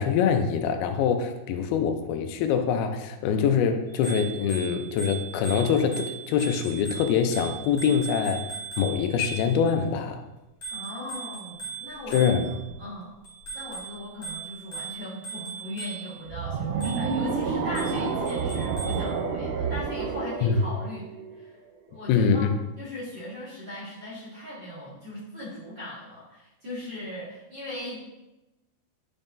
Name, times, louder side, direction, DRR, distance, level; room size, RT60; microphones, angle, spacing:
voice 1, 0.0-8.4 8.8-10.2 12.1-12.5 20.4-20.6 22.1-22.5, left 7 dB, 85° left, 7 dB, 2.5 m, -24 dB
Bicycle bell, 3.9-9.7 10.6-12.7 13.2-16.2 16.8-17.2 17.8-19.1, right 6 dB, 25° left, 2.2 m, -39 dB
voice 2, 10.7-12.5 12.8-13.1 13.5-21.1 21.3-21.5 21.9-22.5 22.8-28.0, left 1 dB, 40° right, -10 dB, 1.8 m, -39 dB
sound 1, 16.3-21.5, right 5 dB, 80° right, 1.9 m, -29 dB
9.8 x 5.4 x 2.6 m, 1.0 s
omnidirectional pair, 4.3 m